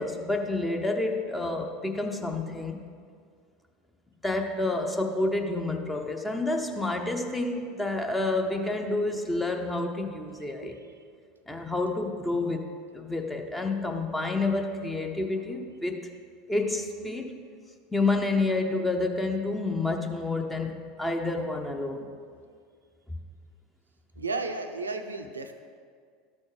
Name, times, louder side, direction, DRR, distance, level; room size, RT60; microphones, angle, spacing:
voice 1, 0.0-2.8 4.2-10.8 11.5-16.1 16.5-17.4 17.9-22.1, left 2 dB, 10° left, 3 dB, 0.8 m, -29 dB
voice 2, 10.6-11.1 24.2-25.5, right 3 dB, 85° right, 6 dB, 0.5 m, -34 dB
12.5 x 4.3 x 4.9 m, 2.1 s
figure-of-eight pair, 75°, 0 cm